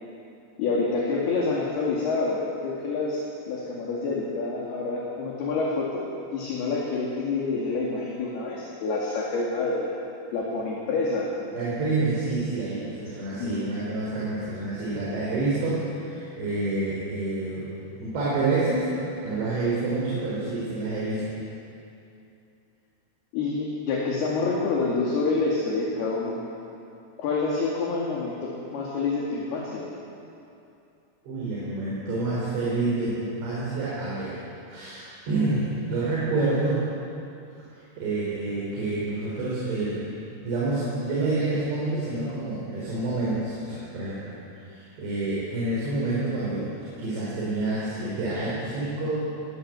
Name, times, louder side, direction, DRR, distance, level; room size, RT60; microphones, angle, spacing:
voice 1, 0.6-6.0 6.3-10.0 10.3-11.3 13.4-13.7 23.3-26.3 27.2-29.9, left 3 dB, 55° left, -3 dB, 3.8 m, -27 dB
voice 2, 11.5-17.7 18.0-18.9 19.2-21.3 31.2-33.1 33.4-34.4 34.7-36.8 38.0-40.0 40.4-44.2 44.6-46.7 47.0-49.2, right 2 dB, 60° right, -7 dB, 6.7 m, -28 dB
20.0 x 19.5 x 8.1 m, 2.7 s
omnidirectional pair, 5.9 m